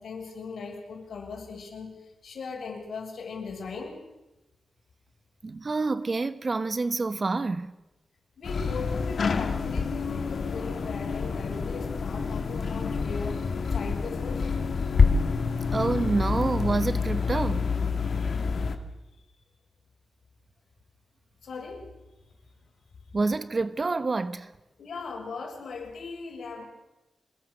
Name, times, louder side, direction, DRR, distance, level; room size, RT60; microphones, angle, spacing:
voice 1, 0.0-4.0 8.4-14.5 21.4-21.9 24.8-26.6, left 4 dB, 70° left, 6.5 m, -38 dB
voice 2, 5.4-7.7 15.7-17.7 23.1-24.5, right 3 dB, 35° right, 1.1 m, -27 dB
sound 1, 8.4-18.8, left 5 dB, 55° left, 2.1 m, -27 dB
26.0 x 21.0 x 6.6 m
wide cardioid pair, 110°, 0 cm